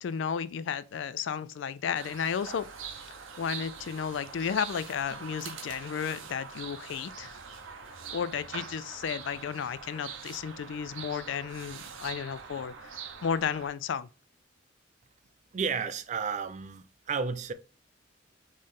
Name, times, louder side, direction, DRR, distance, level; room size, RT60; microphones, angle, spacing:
voice 1, 0.0-2.7 3.4-7.4 8.1-12.9 13.2-14.1, left 7 dB, 65° left, 0.3 m, -33 dB
sound 1, 1.9-13.7, right 6 dB, 85° right, 0.7 m, -43 dB
voice 2, 15.5-17.5, right 5 dB, 40° right, 0.4 m, -32 dB
4.3 x 3.1 x 3.6 m
head